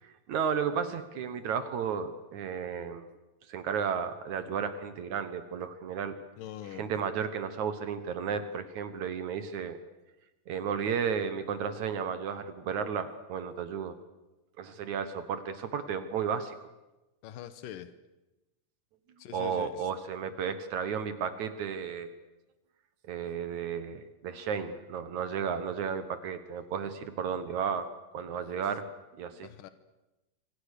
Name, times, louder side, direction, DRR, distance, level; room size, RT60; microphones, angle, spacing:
voice 1, 0.3-3.1 3.5-6.2 6.7-9.8 10.5-14.0 14.6-16.6 19.3-22.1 23.1-27.9 28.1-28.9 29.2-29.5, right 7 dB, 65° right, 11 dB, 2.6 m, -33 dB
voice 2, 6.4-6.8 17.2-17.9 19.2-19.9 29.4-29.7, left 11 dB, 85° left, 12 dB, 2.8 m, -43 dB
27.0 x 25.5 x 6.7 m, 1.0 s
omnidirectional pair, 3.8 m